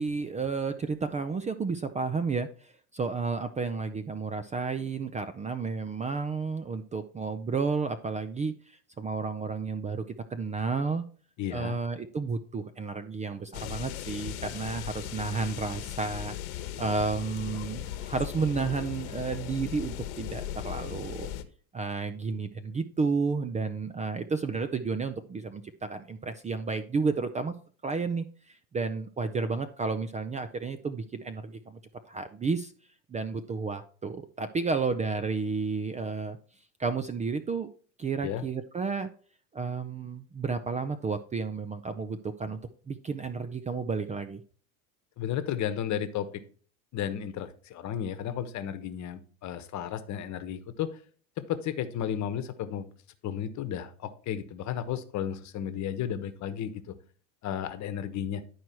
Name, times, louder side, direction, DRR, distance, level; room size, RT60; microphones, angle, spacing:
voice 1, 0.0-10.0 10.3-11.0 11.5-16.4 16.8-21.3 21.7-27.5 27.8-31.8 32.0-32.7 33.1-36.4 36.8-37.7 38.0-39.1 39.5-42.6 42.9-44.4, right 4 dB, 15° right, 11 dB, 0.5 m, -32 dB
voice 2, 11.4-11.8 38.2-38.4 45.2-46.4 46.9-50.9 51.4-52.9 53.2-57.0 57.4-58.4, left 9 dB, 40° left, 11 dB, 1.2 m, -33 dB
sound 1, 13.5-21.4, left 11 dB, 75° left, 1.2 m, -38 dB
11.0 x 4.8 x 4.4 m, 0.43 s
supercardioid pair, 110°, 42 cm